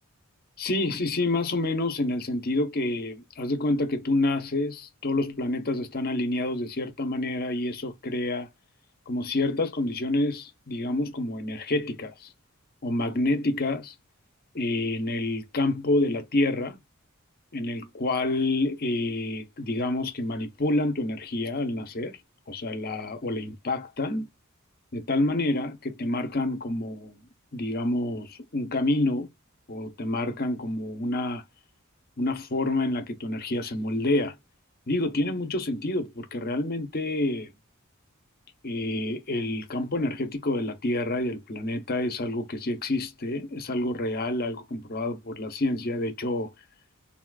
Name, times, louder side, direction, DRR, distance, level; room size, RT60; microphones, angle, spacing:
voice 1, 0.6-8.5 9.1-12.3 12.8-13.9 14.5-16.8 17.5-22.2 22.5-24.3 24.9-27.2 27.5-29.3 29.7-31.4 32.2-34.4 34.9-37.5 38.6-46.5, left 2 dB, 45° left, 0.9 m, -28 dB
3.9 x 2.5 x 2.3 m
head